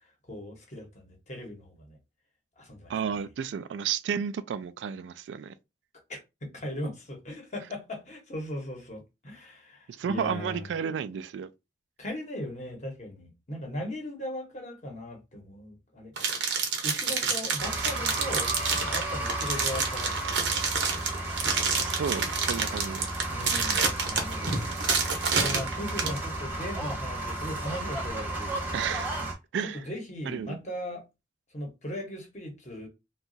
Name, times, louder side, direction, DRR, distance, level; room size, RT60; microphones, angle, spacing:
voice 1, 0.3-2.0 2.6-3.3 6.1-10.7 12.0-16.1 16.8-18.5 18.9-21.3 23.3-24.6 25.3-28.7 29.6-31.0 31.5-32.9, left 1 dB, 40° left, 0.9 m, -38 dB
voice 2, 2.9-5.5 9.9-11.5 21.8-23.1 28.7-29.1 29.5-29.8 30.3-30.6, right 7 dB, 90° right, 0.3 m, -32 dB
sound 1, 16.2-26.2, right 5 dB, 75° right, 0.8 m, -28 dB
sound 2, 17.6-29.3, right 2 dB, 10° right, 0.7 m, -33 dB
2.8 x 2.3 x 2.6 m
head